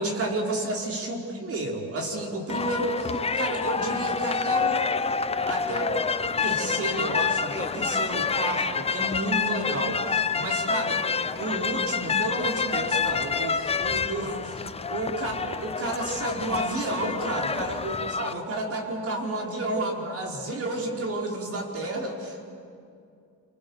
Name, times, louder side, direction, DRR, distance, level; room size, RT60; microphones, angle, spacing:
voice 1, 0.0-4.9 5.5-6.0 6.4-11.0 11.4-22.4, right 1 dB, 45° right, 1 dB, 4.8 m, -31 dB
sound 1, 2.5-18.3, left 5 dB, 20° left, 0.7 m, -28 dB
28.0 x 26.0 x 7.3 m, 2.4 s
cardioid pair, 130°, 33 cm